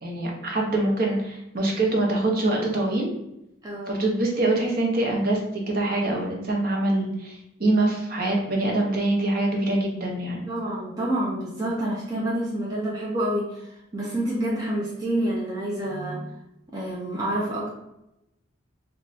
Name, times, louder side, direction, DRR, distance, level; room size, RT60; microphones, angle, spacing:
voice 1, 0.0-3.1 3.9-5.4 5.7-10.4, right 2 dB, 45° right, -1 dB, 0.7 m, -24 dB
voice 2, 3.6-3.9 10.5-16.3 16.7-17.7, right 1 dB, 20° right, -5 dB, 0.5 m, -28 dB
3.1 x 2.2 x 4.0 m, 0.87 s
head